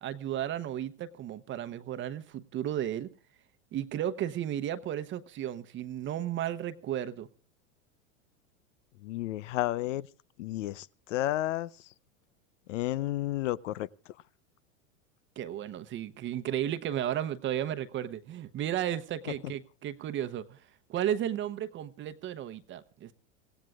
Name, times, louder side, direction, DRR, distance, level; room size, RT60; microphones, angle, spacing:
voice 1, 0.0-3.1 3.7-7.3 15.4-20.6 20.9-23.1, right 11 dB, 30° right, 0.9 m, -34 dB
voice 2, 9.0-10.1 10.4-11.9 12.7-14.1 19.4-19.5, left 15 dB, 80° left, 0.8 m, -32 dB
26.5 x 17.0 x 2.4 m
supercardioid pair, 120°, 37 cm